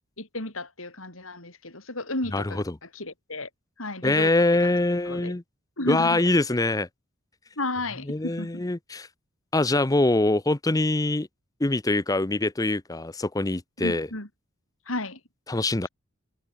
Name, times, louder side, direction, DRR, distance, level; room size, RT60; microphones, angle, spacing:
voice 1, 0.2-3.5 3.8-4.3 4.6-4.7 5.1-5.4 5.8-6.2 7.6-8.6 13.8-14.3 14.9-15.2, left 2 dB, 75° left, 7.8 m, -33 dB
voice 2, 2.3-2.7 4.0-5.4 5.9-6.9 8.1-9.1 9.5-11.3 11.6-14.1 15.5-15.9, left 2 dB, 15° left, 0.7 m, -24 dB
head